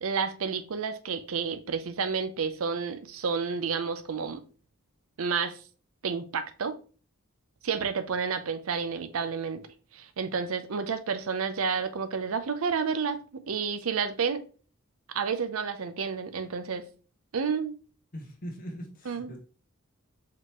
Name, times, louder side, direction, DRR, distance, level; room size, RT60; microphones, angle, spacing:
voice 1, 0.0-4.4 5.2-5.6 6.0-6.7 7.6-9.6 9.9-13.2 13.5-14.4 15.1-16.8 17.3-17.8 19.0-19.3, right 5 dB, 75° right, 0.6 m, -30 dB
voice 2, 18.1-19.4, equal, 40° left, 1.3 m, -41 dB
4.9 x 3.7 x 3.0 m
head